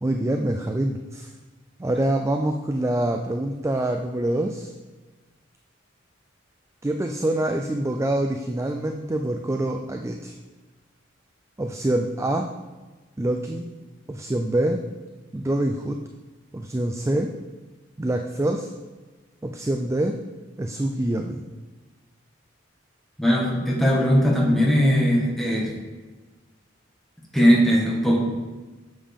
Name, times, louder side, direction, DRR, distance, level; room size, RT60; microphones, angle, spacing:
voice 1, 0.0-1.3 1.8-4.7 6.8-10.3 11.6-12.5 13.2-13.6 14.1-14.8 15.3-16.0 16.5-17.3 18.0-18.7 19.4-20.1 20.6-21.4, right 1 dB, 15° right, 4 dB, 0.3 m, -25 dB
voice 2, 23.2-25.7 27.3-28.2, equal, ahead, -4 dB, 1.7 m, -19 dB
8.6 x 7.2 x 3.6 m, 1.3 s
head